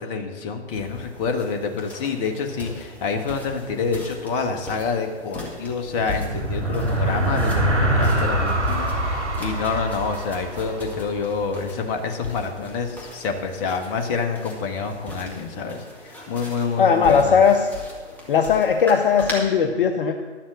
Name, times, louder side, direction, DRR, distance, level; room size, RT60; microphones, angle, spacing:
voice 1, 0.0-17.4, left 5 dB, 25° left, 5 dB, 1.1 m, -27 dB
sound 1, 0.7-19.3, left 2 dB, 5° left, 1.8 m, -39 dB
sound 2, 5.9-11.6, right 1 dB, 80° right, 2.4 m, -24 dB
voice 2, 16.8-17.7 18.3-20.1, left 6 dB, 50° left, 6 dB, 0.7 m, -18 dB
11.5 x 7.4 x 6.4 m, 1.5 s
figure-of-eight pair, 120°, 34 cm